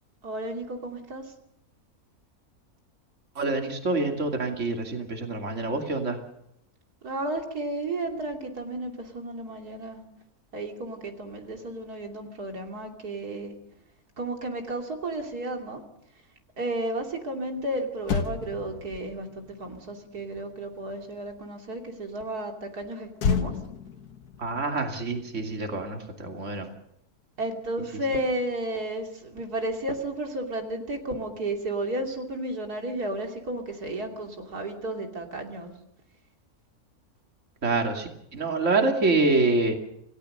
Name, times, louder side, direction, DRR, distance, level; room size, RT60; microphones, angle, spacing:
voice 1, 0.2-1.3 7.0-10.0 10.5-13.5 14.2-15.8 16.6-23.6 27.4-35.7, right 1 dB, 85° right, 3 dB, 3.4 m, -33 dB
voice 2, 3.4-6.2 24.4-26.7 37.6-39.7, right 3 dB, 50° right, 3 dB, 2.9 m, -26 dB
Motor vehicle (road), 17.6-17.7 18.0-21.5 23.2-25.8 26.0-26.3, left 6 dB, 85° left, 1.7 m, -33 dB
28.5 x 17.0 x 6.7 m, 0.76 s
omnidirectional pair, 1.6 m